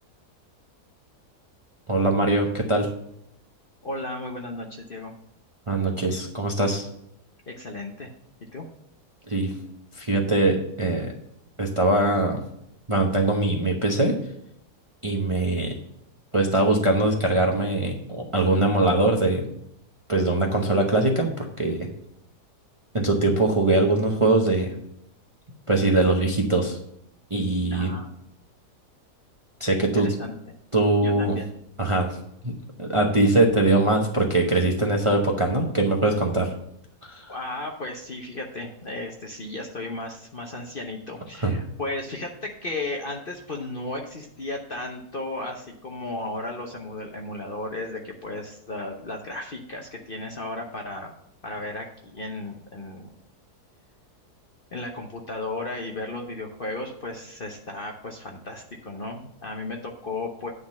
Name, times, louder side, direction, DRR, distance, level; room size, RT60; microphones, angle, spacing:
voice 1, 1.9-2.9 5.7-6.9 9.3-9.5 10.0-11.1 11.6-12.4 12.9-14.2 15.0-15.7 16.3-19.5 20.1-21.9 22.9-24.7 25.7-26.8 27.3-27.9 29.6-30.1 30.7-31.4 31.8-32.1 32.4-32.5 32.8-36.5 37.1-37.3 41.4-41.6, right 2 dB, 25° right, 1 dB, 0.8 m, -22 dB
voice 2, 3.8-5.1 7.5-8.1 8.5-8.7 27.7-28.1 29.8-30.3 31.0-31.5 37.3-51.1 51.4-53.1 54.7-60.5, left 2 dB, 45° left, 1 dB, 0.8 m, -34 dB
9.5 x 3.9 x 7.2 m, 0.76 s
omnidirectional pair, 1.7 m